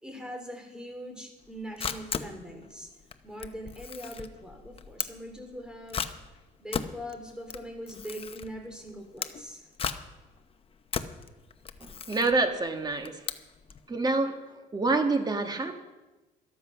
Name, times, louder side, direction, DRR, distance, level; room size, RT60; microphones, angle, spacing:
voice 1, 0.0-2.9 3.2-6.0 6.6-9.7, equal, 5° right, 3 dB, 3.4 m, -41 dB
Camera, 1.4-13.8, left 6 dB, 35° left, 0.9 m, -37 dB
voice 2, 12.1-13.1 13.9-14.3 14.7-15.8, right 3 dB, 25° right, 6 dB, 1.6 m, -26 dB
13.5 x 13.0 x 5.7 m, 1.1 s
cardioid pair, 110°, 17 cm